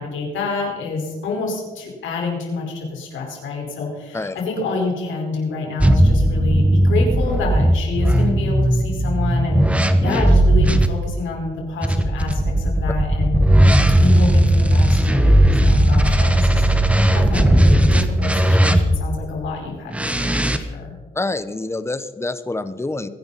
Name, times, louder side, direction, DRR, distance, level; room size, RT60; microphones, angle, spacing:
voice 1, 0.0-13.4 14.0-20.9, left 3 dB, 75° left, 0 dB, 5.0 m, -28 dB
sound 1, 5.8-10.9 11.8-19.2 19.9-20.6, right 1 dB, 5° right, 1.2 m, -16 dB
voice 2, 21.1-23.1, left 2 dB, 15° left, 12 dB, 1.0 m, -26 dB
23.5 x 10.5 x 4.2 m, 1.3 s
cardioid pair, 90°, 20 cm